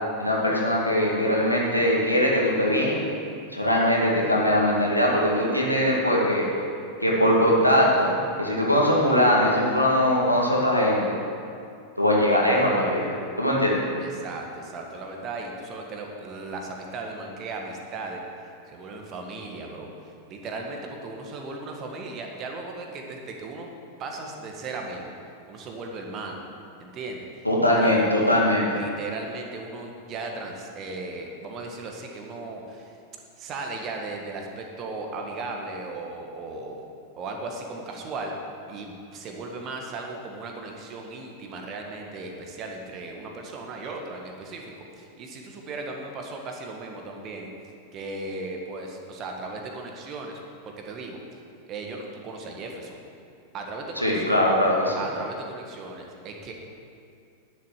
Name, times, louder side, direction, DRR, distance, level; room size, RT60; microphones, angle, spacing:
voice 1, 0.2-3.0 3.5-6.4 7.0-11.2 12.0-13.8 27.4-28.8 54.0-55.0, equal, 90° left, -3 dB, 2.1 m, -21 dB
voice 2, 14.0-18.2 18.7-19.9 20.3-23.7 24.0-25.1 25.5-26.4 26.8-28.4 28.7-33.0 33.4-36.8 37.2-38.3 38.7-47.5 47.9-50.4 50.7-51.2 51.7-53.0 53.5-54.5 55.0-56.5, right 3 dB, 35° right, 2 dB, 1.7 m, -36 dB
11.0 x 7.2 x 7.4 m, 2.4 s
figure-of-eight pair, 90°, 0 cm